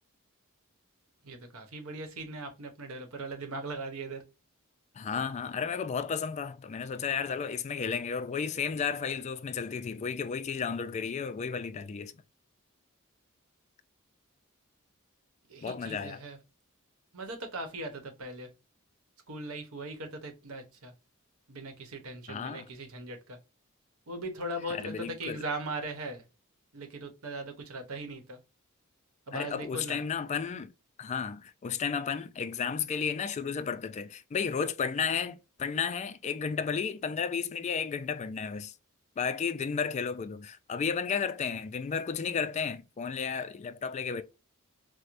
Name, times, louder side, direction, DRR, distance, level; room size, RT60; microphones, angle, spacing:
voice 1, 1.2-4.2 15.5-16.4 17.1-18.5 19.3-20.9 21.5-23.4 24.1-26.2 26.7-28.4 29.3-30.0, right 2 dB, 85° right, 0.9 m, -39 dB
voice 2, 5.0-12.1 15.6-16.2 22.3-22.7 24.7-25.4 29.3-30.7 31.0-38.7 39.2-44.2, left 6 dB, 35° left, 0.3 m, -33 dB
4.5 x 2.1 x 2.5 m
head